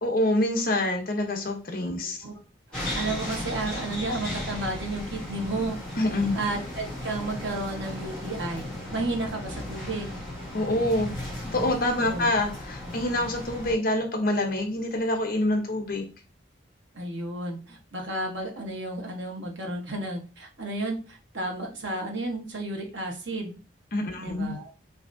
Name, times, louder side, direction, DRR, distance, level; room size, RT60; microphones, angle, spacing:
voice 1, 0.0-2.2 6.0-6.3 10.5-11.1 11.4-16.1 23.9-24.5, left 1 dB, 50° left, 4 dB, 0.9 m, -26 dB
sound 1, 2.7-13.7, left 1 dB, 5° left, 2.0 m, -36 dB
voice 2, 2.7-5.8 6.3-8.6 8.9-10.2 12.1-12.3 12.8-12.9 16.9-23.6 24.2-24.7, right 2 dB, 80° right, 2 dB, 1.3 m, -32 dB
5.8 x 2.8 x 2.7 m, 0.33 s
head